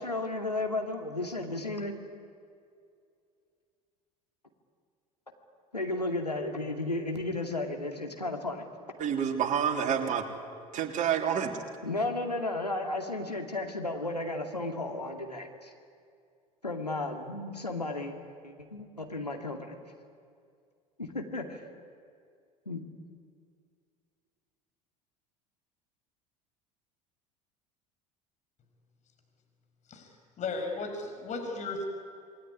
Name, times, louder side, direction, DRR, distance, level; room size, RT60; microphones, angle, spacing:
voice 1, 0.0-2.0 5.7-8.7 11.8-15.7 16.6-18.2 18.4-19.8 21.0-21.7 22.7-22.8, left 2 dB, 90° left, 3 dB, 2.5 m, -33 dB
voice 2, 9.0-10.3 10.7-11.6, right 8 dB, 40° right, 3 dB, 3.5 m, -28 dB
voice 3, 30.4-31.9, left 3 dB, 35° left, 4 dB, 6.1 m, -35 dB
27.5 x 21.5 x 9.9 m, 2.3 s
figure-of-eight pair, 70°, 20 cm